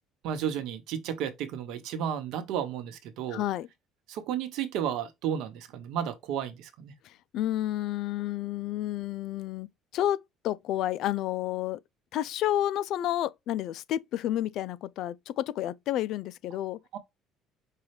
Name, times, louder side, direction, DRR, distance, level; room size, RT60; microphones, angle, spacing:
voice 1, 0.2-3.4 4.1-6.9 16.9-17.0, right 9 dB, 75° right, 1.1 m, -33 dB
voice 2, 3.3-3.7 7.0-9.7 9.9-10.2 10.4-11.8 12.1-16.8, left 13 dB, 65° left, 0.4 m, -30 dB
5.5 x 2.3 x 3.2 m
cardioid pair, 130°, 0 cm